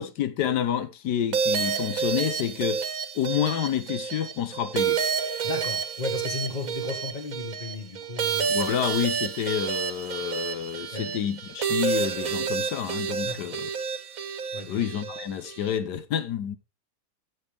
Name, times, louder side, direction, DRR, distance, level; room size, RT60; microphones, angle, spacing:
voice 1, 0.0-2.8 3.1-5.0 8.5-13.7 14.7-16.6, left 9 dB, 90° left, 1.5 m, -29 dB
sound 1, 1.3-15.8, right 6 dB, 60° right, 1.5 m, -29 dB
voice 2, 5.4-8.7 10.9-11.2 13.2-13.5 14.5-14.9, left 4 dB, 30° left, 1.7 m, -35 dB
14.0 x 7.2 x 3.4 m
omnidirectional pair, 1.7 m